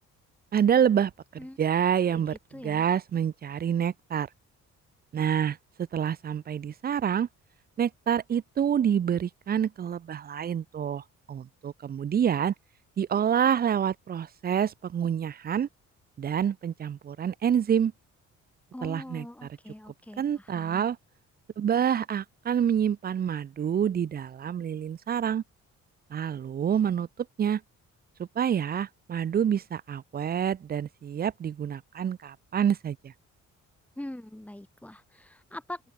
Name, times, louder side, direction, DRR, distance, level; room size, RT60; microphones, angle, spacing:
voice 1, 0.5-2.3 2.6-4.3 5.1-5.6 5.9-7.3 7.8-12.5 13.0-15.7 16.2-17.9 18.8-19.5 20.2-21.0 21.6-25.4 26.1-27.1 27.4-27.6 28.2-33.1, right 8 dB, 30° right, 0.4 m, -27 dB
voice 2, 2.5-2.9 18.7-20.9 34.0-35.9, left 1 dB, 5° left, 1.8 m, -42 dB
cardioid pair, 90°, 30 cm